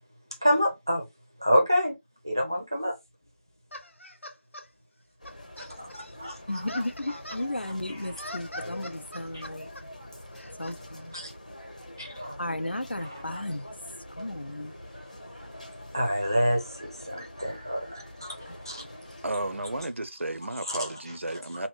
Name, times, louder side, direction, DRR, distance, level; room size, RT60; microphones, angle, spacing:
voice 1, 0.4-1.0 1.4-2.0 2.2-2.9 5.6-7.2 7.9-8.2 9.3-9.4 11.1-11.3 12.0-12.4 13.0-13.4 15.9-18.8 20.7-20.8, equal, 20° right, 0.5 m, -28 dB
sound 1, 3.7-4.7 5.3-7.5 8.0-9.8 10.3-10.8, left 1 dB, 80° left, 0.8 m, -43 dB
sound 2, 5.2-19.8, left 1 dB, 35° left, 0.8 m, -45 dB
voice 2, 6.5-9.7 10.6-11.1 12.4-13.7 14.1-14.7 18.5-18.6, left 1 dB, 55° left, 0.5 m, -34 dB
voice 3, 19.2-21.7, right 1 dB, 75° right, 0.5 m, -33 dB
2.9 x 2.0 x 3.7 m
figure-of-eight pair, 175°, 7 cm